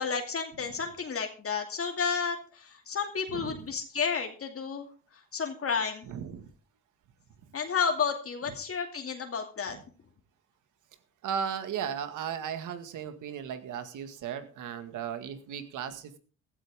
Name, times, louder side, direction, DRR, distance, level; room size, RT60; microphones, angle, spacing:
voice 1, 0.0-4.9 5.3-6.1 7.5-9.8, left 6 dB, 50° left, 3 dB, 2.5 m, -31 dB
voice 2, 6.1-6.5 9.7-9.8 11.2-16.2, right 8 dB, 80° right, 9 dB, 2.0 m, -36 dB
15.5 x 14.0 x 3.6 m, 0.37 s
cardioid pair, 90°, 30 cm